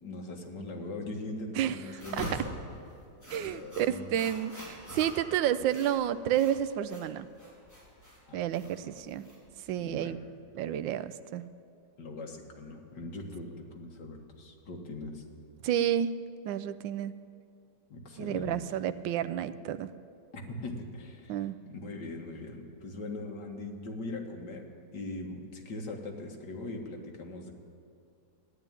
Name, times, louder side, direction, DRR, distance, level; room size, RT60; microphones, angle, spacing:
voice 1, 0.0-2.5 3.4-4.2 8.3-8.7 9.8-10.2 12.0-15.2 17.9-18.6 20.3-24.7 24.9-27.5, left 2 dB, 65° left, 1 dB, 2.3 m, -41 dB
sound 1, 1.9-9.9, equal, 10° left, 4.3 m, -43 dB
voice 2, 3.3-7.3 8.3-9.2 9.7-10.2 10.5-11.4 15.6-16.2 16.4-17.1 18.2-19.9 21.3-21.6, right 10 dB, 90° right, 13 dB, 1.3 m, -30 dB
14.0 x 11.0 x 9.1 m, 2.4 s
omnidirectional pair, 2.0 m